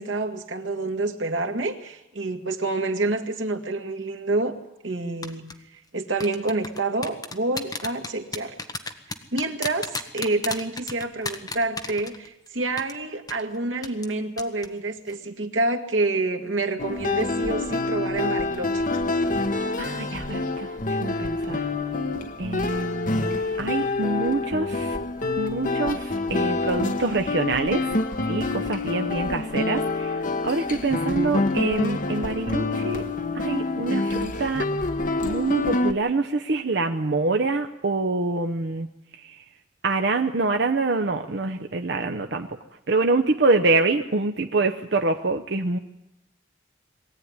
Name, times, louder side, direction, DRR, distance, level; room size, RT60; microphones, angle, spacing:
voice 1, 0.0-4.6 4.8-5.5 5.7-8.6 9.3-18.9, right 2 dB, 90° right, 5 dB, 2.0 m, -28 dB
sound 1, 5.2-5.5 6.2-12.5 12.8-12.9 13.3-13.4 13.8-14.1 14.4-14.7 15.0-15.1, left 3 dB, 20° left, 1.3 m, -32 dB
sound 2, 16.8-35.9, left 2 dB, 45° left, 1.2 m, -27 dB
voice 2, 19.8-21.6 22.4-25.0 25.4-27.9 28.2-33.0 33.3-34.7 35.2-38.9 39.2-39.3 39.8-42.5 42.9-45.8, right 3 dB, 65° right, 5 dB, 0.9 m, -25 dB
22.0 x 15.5 x 9.6 m, 0.94 s
head